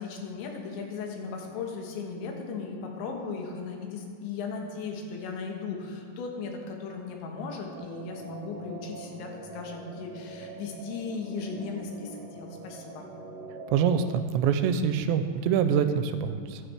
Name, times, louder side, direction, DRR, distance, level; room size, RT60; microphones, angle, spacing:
voice 1, 0.0-13.1, left 4 dB, 90° left, 1 dB, 3.7 m, -37 dB
sound 1, 7.7-14.2, right 3 dB, 65° right, 1.6 m, -44 dB
voice 2, 13.7-16.6, right 7 dB, 85° right, 9 dB, 2.7 m, -25 dB
15.0 x 11.0 x 3.4 m, 2.4 s
omnidirectional pair, 5.2 m